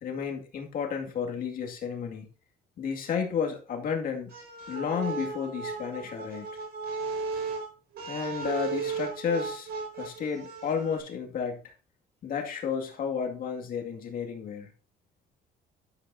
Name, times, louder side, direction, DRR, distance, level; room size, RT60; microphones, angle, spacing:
voice 1, 0.0-2.3 2.8-4.3 4.7-6.5 8.1-9.7 10.0-11.7 12.2-14.7, left 6 dB, 55° left, 2 dB, 2.2 m, -32 dB
sound 1, 4.3-11.0, right 4 dB, 70° right, 4.9 m, -35 dB
11.5 x 9.6 x 2.7 m, 0.35 s
cardioid pair, 110°, 17 cm